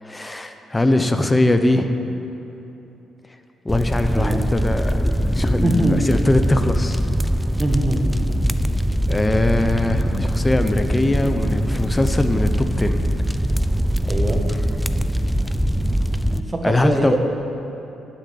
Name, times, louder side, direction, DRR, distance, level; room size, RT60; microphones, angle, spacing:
voice 1, 0.0-1.9 3.6-7.0 9.1-13.0 16.6-17.2, left 1 dB, 15° left, 7 dB, 0.9 m, -21 dB
sound 1, 3.7-16.4, equal, ahead, 0.5 m, -22 dB
voice 2, 5.6-6.1 7.6-8.4 11.2-11.3 14.1-14.5 16.3-17.2, right 1 dB, 25° right, 2 dB, 1.7 m, -23 dB
11.5 x 6.8 x 8.7 m, 3.0 s
cardioid pair, 90°, 0 cm